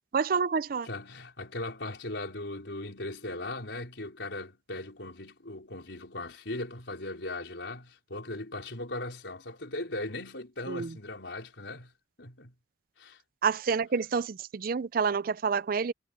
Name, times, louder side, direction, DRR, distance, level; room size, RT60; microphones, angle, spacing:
voice 1, 0.1-0.9 10.7-10.9 13.4-15.9, right 5 dB, 55° right, 0.5 m, -28 dB
voice 2, 0.8-11.9 12.2-12.5 13.0-13.2, left 2 dB, 85° left, 4.4 m, -38 dB
head